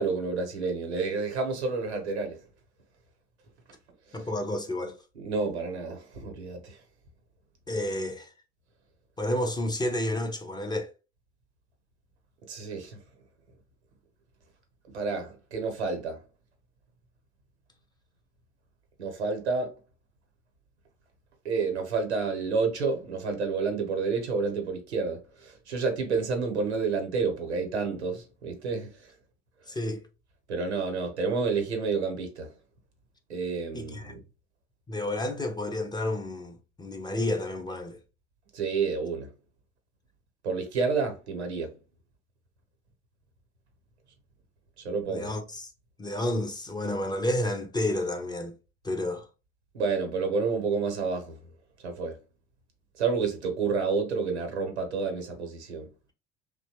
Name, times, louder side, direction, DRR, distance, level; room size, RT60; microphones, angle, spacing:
voice 1, 0.0-2.4 4.1-4.3 5.2-6.8 12.5-13.0 14.9-16.2 19.0-19.7 21.4-29.1 30.5-32.5 33.3-34.2 38.5-39.3 40.4-41.7 44.8-45.3 49.7-51.4 51.8-52.2 53.0-55.9, right 4 dB, 85° right, 0.7 m, -29 dB
voice 2, 4.1-5.0 7.7-8.3 9.2-10.9 29.7-30.0 33.7-34.1 34.9-38.0 45.1-45.7 46.0-48.5 48.8-49.3, left 1 dB, 15° left, 0.4 m, -30 dB
2.7 x 2.0 x 2.7 m
figure-of-eight pair, 65°, 33 cm